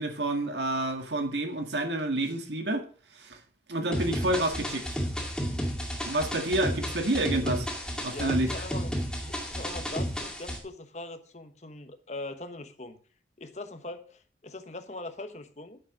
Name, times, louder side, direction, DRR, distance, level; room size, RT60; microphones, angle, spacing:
voice 1, 0.0-2.9 3.1-3.4 3.7-5.0 6.1-7.7 8.0-8.5, right 1 dB, 80° right, 1.9 m, -29 dB
sound 1, 3.9-10.6, equal, 5° left, 2.3 m, -32 dB
voice 2, 8.0-8.9 9.2-13.0 13.4-15.8, left 2 dB, 40° left, 1.1 m, -41 dB
10.0 x 7.1 x 6.4 m
head